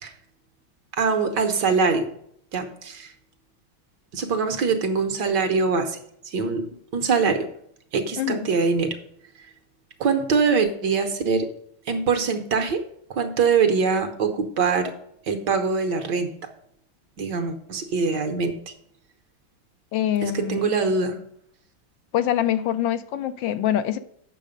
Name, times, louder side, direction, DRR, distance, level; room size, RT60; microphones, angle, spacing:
voice 1, 0.9-2.1 2.5-3.1 4.1-6.0 6.2-7.5 7.9-9.0 10.0-11.5 11.9-12.8 13.1-14.9 15.3-16.3 17.2-18.5 20.2-21.2, right 5 dB, 65° right, 6 dB, 1.6 m, -23 dB
voice 2, 8.2-8.5 19.9-20.6 22.1-24.0, left 11 dB, 75° left, 11 dB, 1.3 m, -24 dB
8.5 x 6.4 x 5.1 m, 0.69 s
omnidirectional pair, 2.1 m